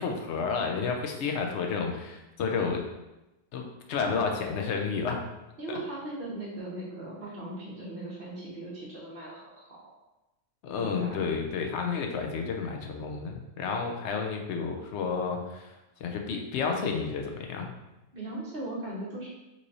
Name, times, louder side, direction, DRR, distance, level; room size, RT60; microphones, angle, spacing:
voice 1, 0.0-2.8 3.5-5.2 5.7-5.8 10.6-15.7 16.0-17.8, left 5 dB, 90° left, 2 dB, 0.9 m, -31 dB
voice 2, 5.6-10.0 10.7-11.2 18.1-19.3, right 2 dB, 55° right, -6 dB, 1.3 m, -38 dB
4.0 x 3.1 x 2.6 m, 0.97 s
omnidirectional pair, 1.1 m